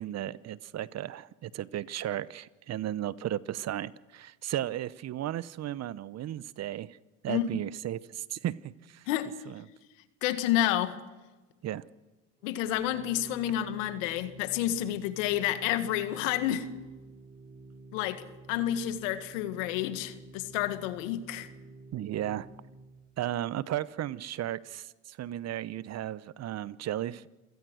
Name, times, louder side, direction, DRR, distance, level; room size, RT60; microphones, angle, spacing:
voice 1, 0.0-7.0 7.2-9.1 9.5-9.6 11.6-11.8 21.9-22.5 23.2-27.3, right 12 dB, 40° right, 0.8 m, -35 dB
voice 2, 10.2-11.0 12.4-16.7 17.9-21.5, left 12 dB, 75° left, 2.0 m, -30 dB
Organ, 12.4-23.1, right 3 dB, 20° right, 5.8 m, -50 dB
27.0 x 17.5 x 6.4 m
hypercardioid pair, 85°, 39 cm